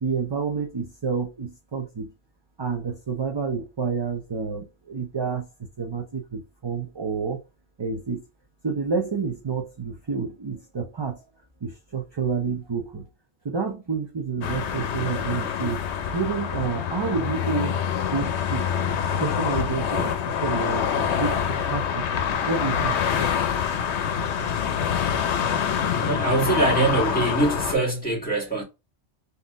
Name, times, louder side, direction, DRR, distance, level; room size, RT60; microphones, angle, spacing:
voice 1, 0.0-2.1 2.6-5.5 5.8-7.4 7.8-8.2 8.6-11.3 11.6-13.1 13.4-15.9 16.1-17.8 18.1-18.7 19.2-22.1 22.5-23.3, right 5 dB, 30° right, 0.5 m, -29 dB
sound 1, 14.4-27.7, left 8 dB, 80° left, 0.9 m, -26 dB
voice 2, 26.0-28.6, right 2 dB, 10° left, 1.8 m, -23 dB
4.1 x 2.8 x 3.6 m
omnidirectional pair, 1.2 m